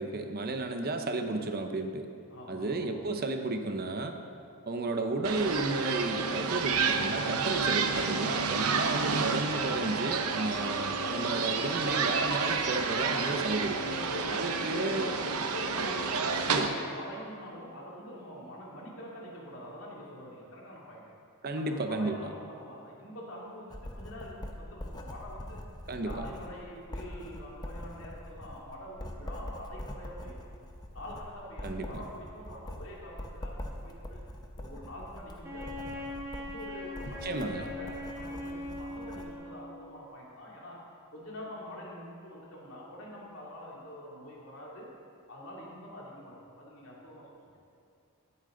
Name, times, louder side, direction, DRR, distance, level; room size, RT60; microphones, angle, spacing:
voice 1, 0.0-2.1 2.5-4.2 4.7-13.8 14.3-15.1 16.5-16.7 21.4-22.2 25.9-26.3 31.6-31.9 37.2-37.7, right 2 dB, 45° right, 6 dB, 0.7 m, -33 dB
voice 2, 2.3-3.1 13.8-21.1 21.5-25.6 26.0-30.4 30.9-34.2 34.6-36.1 36.4-45.0 45.3-47.5, equal, 65° left, -4 dB, 2.7 m, -45 dB
sound 1, 5.2-16.7, right 5 dB, 85° right, 0.9 m, -30 dB
Writing, 23.7-39.3, left 1 dB, 20° left, 0.8 m, -43 dB
Wind instrument woodwind instrument, 35.4-39.8, left 1 dB, 10° right, 2.1 m, -41 dB
17.0 x 8.7 x 3.8 m, 2.5 s
head